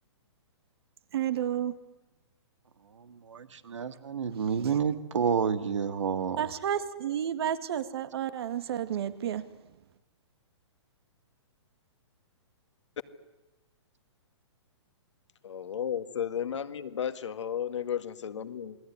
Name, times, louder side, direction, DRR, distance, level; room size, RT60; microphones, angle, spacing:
voice 1, 1.1-1.8 6.4-9.5, right 10 dB, 55° right, 2.0 m, -31 dB
voice 2, 3.1-6.4, right 7 dB, 85° right, 2.2 m, -29 dB
voice 3, 15.4-18.8, left 9 dB, 75° left, 1.9 m, -33 dB
28.0 x 20.5 x 9.8 m
hypercardioid pair, 150°, 15 cm